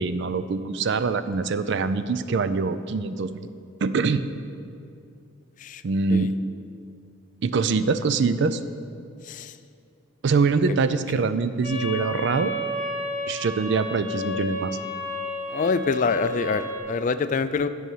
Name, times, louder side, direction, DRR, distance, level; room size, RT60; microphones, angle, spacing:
voice 1, 0.0-3.5 3.8-4.2 5.8-6.3 7.4-8.6 10.2-12.5 13.3-14.8, right 4 dB, 60° right, 12 dB, 0.4 m, -24 dB
sound 1, 11.6-16.8, left 1 dB, 15° left, 1.8 m, -31 dB
voice 2, 15.5-17.7, left 5 dB, 40° left, 12 dB, 0.3 m, -26 dB
8.3 x 6.3 x 7.2 m, 2.4 s
head